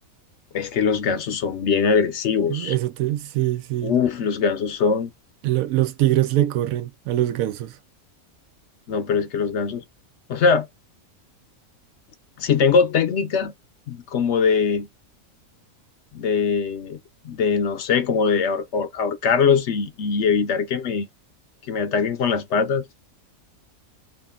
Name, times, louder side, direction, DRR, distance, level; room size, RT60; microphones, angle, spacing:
voice 1, 0.5-2.8 3.8-5.1 8.9-9.8 10.3-10.7 12.4-13.5 13.9-14.9 16.1-17.0 17.2-21.1 21.7-22.8, left 5 dB, 65° left, 0.8 m, -22 dB
voice 2, 2.5-4.0 5.4-7.8, right 14 dB, 80° right, 1.0 m, -23 dB
3.5 x 2.4 x 3.6 m
omnidirectional pair, 1.4 m